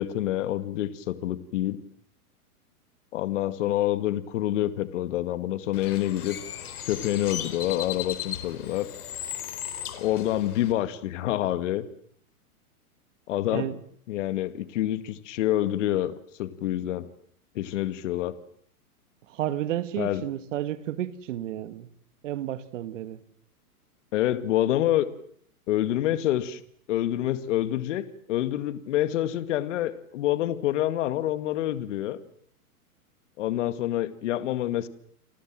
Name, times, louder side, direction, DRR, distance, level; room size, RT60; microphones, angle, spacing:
voice 1, 0.0-1.8 3.1-6.4 6.9-8.9 10.0-11.9 13.3-13.7 14.1-16.1 16.4-17.1 17.6-18.3 20.0-20.2 24.1-25.1 25.7-26.6 26.9-32.2 33.4-34.9, left 13 dB, 50° left, 2.1 m, -27 dB
Bird, 5.7-10.7, left 10 dB, 75° left, 4.3 m, -37 dB
voice 2, 19.3-21.9 22.2-23.2, right 12 dB, 55° right, 2.2 m, -32 dB
30.0 x 24.0 x 7.7 m
hypercardioid pair, 150°, 45 cm